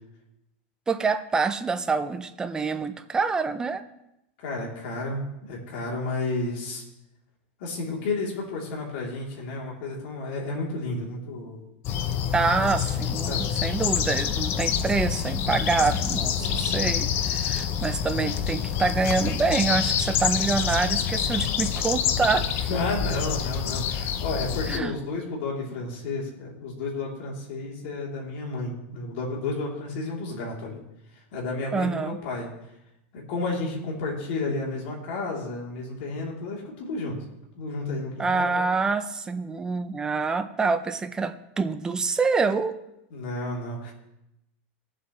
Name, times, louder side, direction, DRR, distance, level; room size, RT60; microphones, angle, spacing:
voice 1, 0.9-3.8 12.3-22.5 24.7-24.9 31.7-32.2 38.2-42.8, right 4 dB, 10° right, 9 dB, 0.5 m, -26 dB
voice 2, 4.4-6.8 7.6-11.6 12.4-12.6 13.3-13.5 16.2-16.9 22.4-30.8 31.3-32.5 33.1-37.2 37.6-38.6 43.1-43.9, left 2 dB, 60° left, -2 dB, 3.1 m, -32 dB
sound 1, 11.8-24.8, left 8 dB, 35° left, 0.6 m, -27 dB
20.0 x 7.5 x 3.1 m, 0.86 s
supercardioid pair, 160°, 7 cm